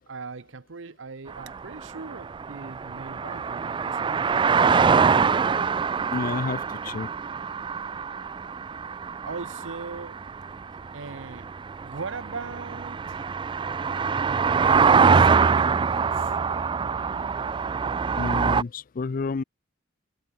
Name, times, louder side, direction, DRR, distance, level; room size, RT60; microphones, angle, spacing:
voice 1, 0.1-4.2 9.2-10.4 10.9-11.5 11.8-13.2 14.4-16.3, right 4 dB, 70° right, 0.8 m, -40 dB
sound 1, 1.3-18.6, right 5 dB, 25° right, 0.3 m, -24 dB
voice 2, 6.1-7.1 18.2-19.4, left 4 dB, 45° left, 0.4 m, -30 dB
head